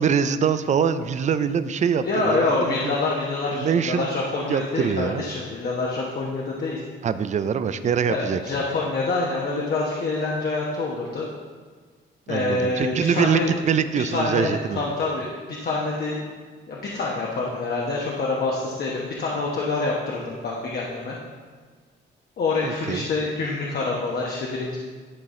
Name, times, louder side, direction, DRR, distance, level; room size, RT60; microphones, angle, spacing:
voice 1, 0.0-2.9 3.5-4.1 4.5-5.2 7.0-8.4 12.3-13.4 13.7-14.8 22.6-23.1, right 7 dB, 35° right, 12 dB, 0.4 m, -24 dB
voice 2, 2.0-6.8 8.1-11.3 12.3-13.6 14.1-16.3 16.7-21.2 22.4-24.8, left 3 dB, 50° left, -3 dB, 1.1 m, -26 dB
11.0 x 4.0 x 3.7 m, 1.5 s
cardioid pair, 90°, 20 cm